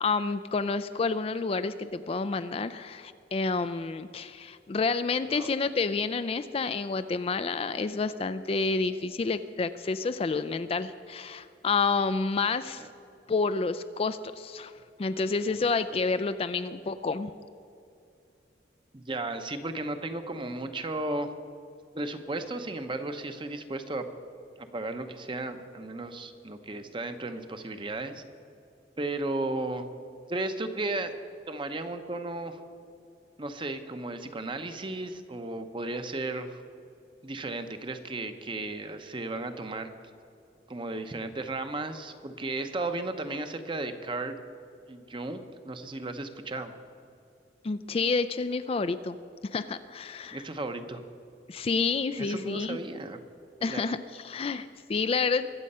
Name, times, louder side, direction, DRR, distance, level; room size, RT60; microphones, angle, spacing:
voice 1, 0.0-12.8 13.3-14.7 15.0-17.3 47.6-49.2 49.5-50.4 51.5-52.8 53.6-55.5, left 4 dB, 30° left, 11 dB, 0.4 m, -29 dB
voice 2, 18.9-21.3 21.9-24.1 24.6-28.2 29.0-29.8 30.3-31.1 31.5-32.6 33.4-36.6 37.2-39.9 40.7-44.4 44.9-46.7 50.3-51.0 52.2-53.2 53.6-53.9, right 2 dB, 30° right, 8 dB, 0.8 m, -34 dB
23.0 x 7.7 x 5.5 m, 2.5 s
head